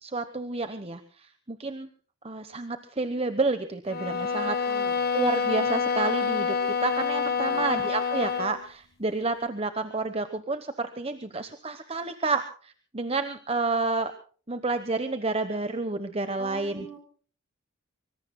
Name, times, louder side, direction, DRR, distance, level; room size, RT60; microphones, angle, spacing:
voice 1, 0.0-1.9 2.2-4.5 5.1-14.1 14.5-16.9, right 3 dB, 30° right, 10 dB, 1.0 m, -30 dB
sound 1, 3.9-8.6, left 6 dB, 45° left, 1.6 m, -27 dB
voice 2, 4.4-5.0 7.4-7.8 16.4-17.0, right 1 dB, 5° right, 2 dB, 4.3 m, -45 dB
24.5 x 24.5 x 2.2 m, 0.43 s
head